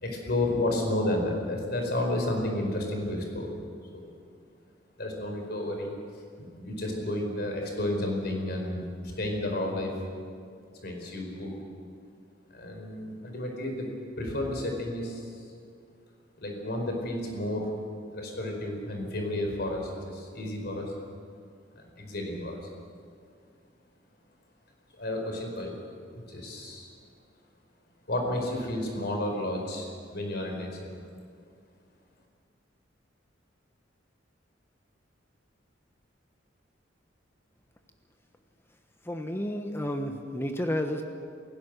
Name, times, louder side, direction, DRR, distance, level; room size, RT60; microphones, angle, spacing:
voice 1, 0.0-3.5 3.9-4.1 5.0-5.9 6.4-9.9 10.8-11.5 12.5-13.9 14.2-15.3 16.4-17.7 18.1-20.9 21.7-22.6 25.0-25.8 26.1-26.9 28.1-30.9, left 1 dB, 55° left, 2 dB, 4.8 m, -31 dB
voice 2, 39.1-41.0, left 1 dB, 15° left, 5 dB, 1.1 m, -31 dB
28.5 x 16.0 x 6.6 m, 2.2 s
head